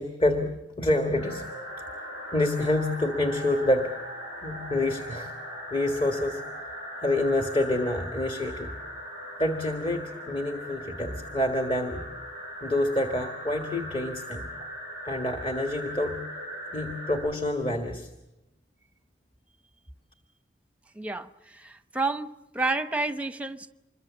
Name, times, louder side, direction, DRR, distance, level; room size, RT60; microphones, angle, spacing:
voice 1, 0.0-1.5 2.0-3.9 4.4-5.3 5.7-6.7 7.0-8.8 9.4-12.0 12.6-14.5 15.0-16.2 16.7-18.1, left 1 dB, 30° left, 5 dB, 1.7 m, -27 dB
sound 1, 1.1-17.2, equal, 65° left, 6.7 m, -39 dB
voice 2, 20.9-22.3 22.5-23.7, right 3 dB, 10° right, 11 dB, 0.8 m, -30 dB
26.0 x 22.5 x 7.4 m, 0.96 s
head